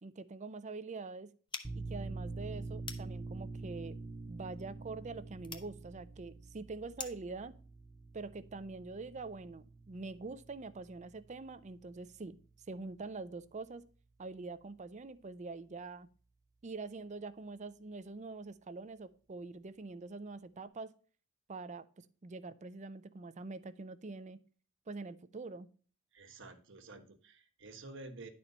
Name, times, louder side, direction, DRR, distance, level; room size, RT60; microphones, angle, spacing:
voice 1, 0.0-1.3 1.7-4.0 4.3-7.6 8.1-12.4 12.7-13.8 14.2-16.1 16.6-20.9 21.5-21.9 22.2-24.4 24.9-25.7, right 3 dB, 35° right, 15 dB, 0.5 m, -45 dB
sound 1, 1.5-7.4, left 5 dB, 25° left, 0.8 m, -50 dB
sound 2, 1.6-12.9, right 3 dB, 15° right, 0.9 m, -46 dB
voice 2, 26.1-28.3, right 2 dB, 65° right, 7 dB, 1.2 m, -50 dB
10.5 x 4.4 x 5.3 m, 0.41 s
head